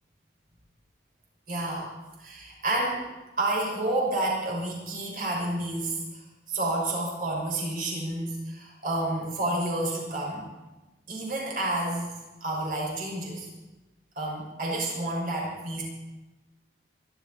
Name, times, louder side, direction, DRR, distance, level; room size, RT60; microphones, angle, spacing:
voice 1, 1.5-1.9 2.2-3.0 3.4-6.0 6.5-10.5 11.1-12.1 12.4-13.5 14.1-15.8, right 2 dB, 50° right, -2 dB, 6.4 m, -29 dB
26.0 x 13.0 x 4.4 m, 1.1 s
head